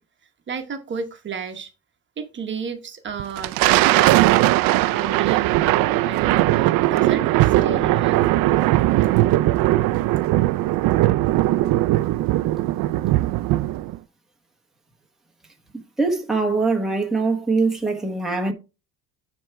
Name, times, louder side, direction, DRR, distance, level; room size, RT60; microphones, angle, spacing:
voice 1, 0.5-1.7 2.2-4.3 4.9-8.3, right 5 dB, 35° right, 1.1 m, -32 dB
Thunder, 3.2-14.0, right 17 dB, 75° right, 0.5 m, -19 dB
voice 2, 15.7-18.5, right 3 dB, ahead, 1.1 m, -22 dB
10.0 x 3.5 x 4.5 m
cardioid pair, 155°, 35 cm